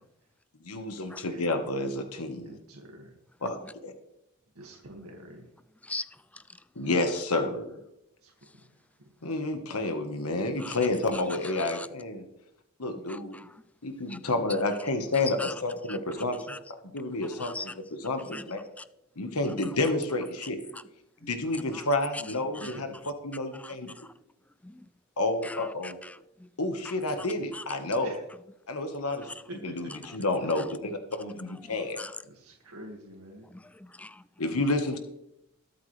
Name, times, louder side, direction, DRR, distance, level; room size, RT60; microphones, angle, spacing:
voice 1, 0.6-2.6 3.4-3.9 6.7-7.7 9.2-12.2 12.8-13.4 13.8-16.5 16.9-18.6 19.2-20.6 21.2-23.9 25.2-26.0 26.6-28.1 28.7-29.3 29.6-32.0 34.4-35.0, left 2 dB, 80° left, 6 dB, 1.4 m, -30 dB
voice 2, 2.4-3.1 4.6-5.5 8.2-8.3 22.2-22.3 22.6-23.0 28.0-28.2 32.3-33.5, right 1 dB, 75° right, 0 dB, 2.1 m, -46 dB
voice 3, 13.1-13.5 14.1-14.2 15.2-15.5 15.9-16.0 16.5-16.6 17.4-17.7 18.3-18.4 18.8-18.9 20.4-20.8 21.7-21.8 22.1-22.2 22.5-22.8 23.5-24.1 24.6-24.9 25.4-26.5 27.5-27.6 29.3-29.4 29.9-30.2 31.6-32.1 33.5-34.2, left 2 dB, 5° left, 16 dB, 0.3 m, -41 dB
21.5 x 8.4 x 3.3 m, 0.85 s
head